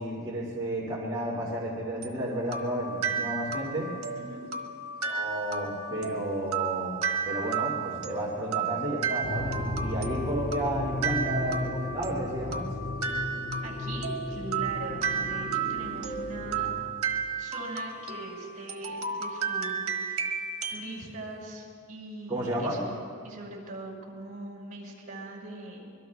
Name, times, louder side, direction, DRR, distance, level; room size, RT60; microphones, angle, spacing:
voice 1, 0.0-3.9 5.0-12.7 22.3-22.8, equal, 20° right, -7 dB, 2.4 m, -32 dB
sound 1, 2.0-20.9, right 6 dB, 90° right, 1.3 m, -33 dB
sound 2, 9.2-16.8, left 1 dB, 60° left, 3.0 m, -35 dB
voice 2, 13.6-16.7 17.4-20.4 20.7-23.0 23.2-25.8, right 2 dB, 40° right, -2 dB, 5.2 m, -41 dB
25.0 x 22.5 x 2.3 m, 2.2 s
head